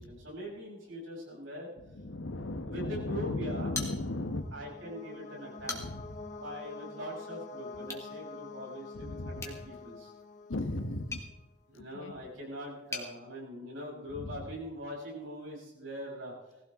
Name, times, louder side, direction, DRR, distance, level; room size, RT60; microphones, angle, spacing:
voice 1, 0.0-1.7 2.7-3.7 4.5-5.9 6.4-10.1 11.7-16.3, equal, 85° right, -2 dB, 6.7 m, -42 dB
voice 2, 1.8-4.5 5.6-6.3 8.9-9.6 10.5-11.2 11.7-12.1 14.1-14.4, left 2 dB, 90° left, 9 dB, 1.2 m, -37 dB
sound 1, 3.7-11.4, left 3 dB, 40° left, 1.0 m, -47 dB
sound 2, 3.7-4.5 4.9-5.0 5.4-6.2 7.8-8.1 9.4-13.1, left 4 dB, 15° left, 1.8 m, -43 dB
20.5 x 15.5 x 3.7 m, 0.99 s
head